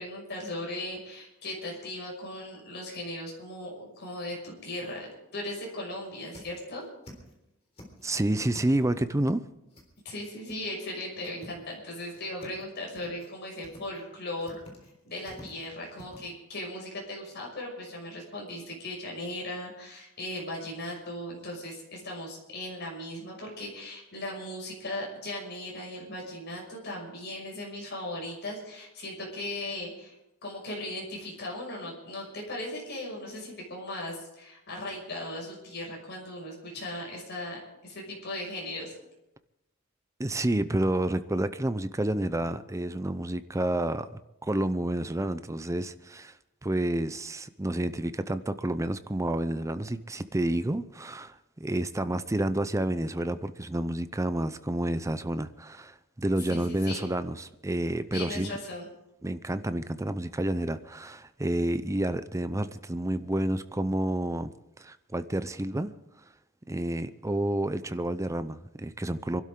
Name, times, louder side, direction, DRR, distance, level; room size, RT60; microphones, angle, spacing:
voice 1, 0.0-6.8 10.0-14.6 15.0-30.1 30.4-38.9 56.5-57.1 58.1-58.9, left 1 dB, 50° left, -1 dB, 6.1 m, -38 dB
sound 1, 4.2-4.6 5.0-5.1 5.5-5.6 5.9-7.3 7.6-9.0 9.7-10.2 10.5-10.6 10.9-11.8 12.1-12.6 12.9-13.3 13.6-14.0 14.3-16.2, left 1 dB, 30° left, 3.7 m, -50 dB
voice 2, 8.0-9.4 40.2-46.3 46.6-58.6 59.2-64.5 64.8-65.9 66.7-69.4, right 1 dB, 15° right, 12 dB, 0.6 m, -29 dB
26.0 x 12.0 x 3.8 m, 0.91 s
head